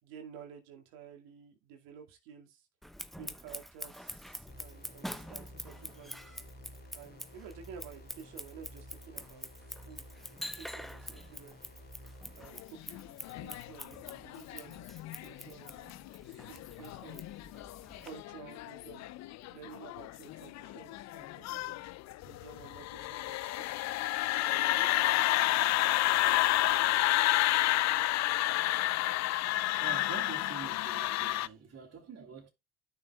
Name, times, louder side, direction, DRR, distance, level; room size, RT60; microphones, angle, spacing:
voice 1, 0.0-2.7 3.2-6.4 6.9-9.5 9.8-11.6 12.3-14.9 15.2-15.9 16.4-17.3 17.8-19.1 19.5-21.8 22.2-23.8 24.4-27.1, right 7 dB, 70° right, 2.3 m, -52 dB
Scissors, 2.8-18.1, equal, ahead, 1.0 m, -46 dB
sound 1, 4.5-12.5, equal, 25° left, 2.7 m, -52 dB
sound 2, 12.6-31.5, left 16 dB, 50° left, 0.5 m, -31 dB
voice 2, 29.8-32.5, right 6 dB, 45° right, 3.0 m, -46 dB
13.0 x 6.1 x 2.4 m
hypercardioid pair, 60°, 35 cm